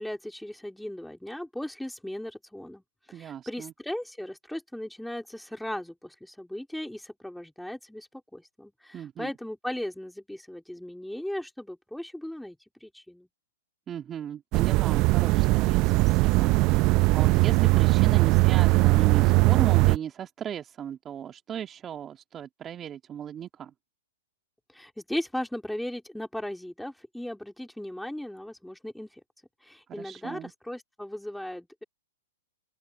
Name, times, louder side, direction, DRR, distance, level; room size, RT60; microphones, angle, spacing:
voice 1, 0.0-13.3 24.7-29.2 29.6-31.8, left 1 dB, ahead, 3.9 m, -37 dB
voice 2, 3.1-3.7 8.9-9.3 13.9-16.6 17.1-23.7 29.9-30.5, right 9 dB, 25° right, 1.9 m, -36 dB
sound 1, 14.5-20.0, right 24 dB, 40° right, 0.6 m, -20 dB
open air
hypercardioid pair, 120°, 0 cm